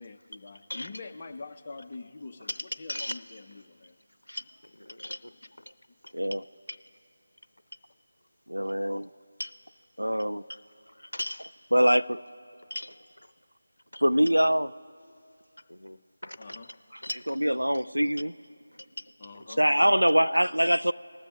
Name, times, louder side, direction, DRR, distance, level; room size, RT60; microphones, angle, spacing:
voice 1, 0.0-2.5 2.8-4.0 16.4-16.7 19.2-19.6, left 3 dB, 30° left, 0.7 m, -44 dB
voice 2, 0.7-1.0 2.4-3.4 4.3-4.4 4.7-5.3 5.7-5.8 6.7-6.8 8.6-8.7 9.4-9.5 10.5-10.6 10.9-11.5 12.7-13.0 13.9-14.0 15.7-16.8 17.0-17.4 17.7-17.8 19.0-19.1, left 1 dB, 80° left, 0.6 m, -38 dB
voice 3, 6.1-6.5 8.5-9.1 10.0-10.4 11.7-12.2 14.0-14.7 16.9-18.3 19.4-20.9, equal, 85° right, 0.4 m, -24 dB
20.0 x 6.9 x 3.7 m
figure-of-eight pair, 165°, 0 cm